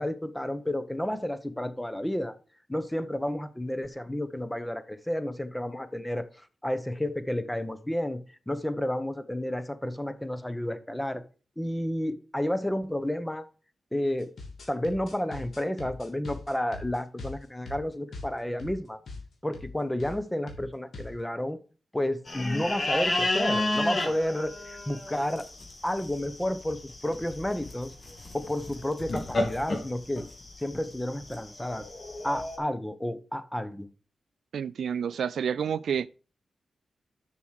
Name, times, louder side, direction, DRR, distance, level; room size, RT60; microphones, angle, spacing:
voice 1, 0.0-2.4 2.7-6.3 6.6-8.2 8.5-11.2 11.6-13.4 13.9-14.3 14.7-19.0 19.4-21.6 21.9-25.5 25.8-27.9 28.3-30.3 30.6-31.9 32.2-33.9, left 1 dB, 10° left, 1.0 m, -31 dB
sound 1, 14.2-18.8 19.1-19.2 19.5-19.7 20.0-20.2 20.5-21.2, left 3 dB, 75° left, 2.7 m, -42 dB
sound 2, 22.3-32.6, left 2 dB, 40° left, 2.3 m, -32 dB
voice 2, 34.5-36.1, right 7 dB, 85° right, 0.3 m, -29 dB
6.9 x 6.2 x 6.4 m
cardioid pair, 75°, 0 cm